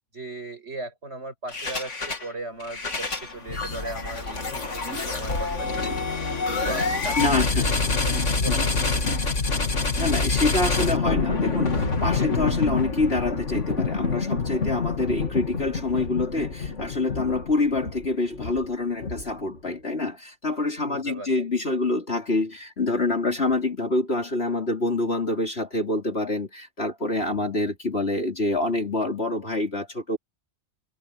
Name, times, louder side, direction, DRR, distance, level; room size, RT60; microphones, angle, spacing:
voice 1, 0.1-7.3 7.5-7.7 8.0-9.1 20.8-21.5, right 2 dB, 65° right, 7.8 m, -38 dB
sound 1, 1.5-2.3 2.6-19.6, left 4 dB, 85° left, 2.8 m, -27 dB
voice 2, 7.2-7.7 8.5-8.6 9.7-30.2, left 2 dB, 60° left, 4.0 m, -26 dB
omnidirectional pair, 1.2 m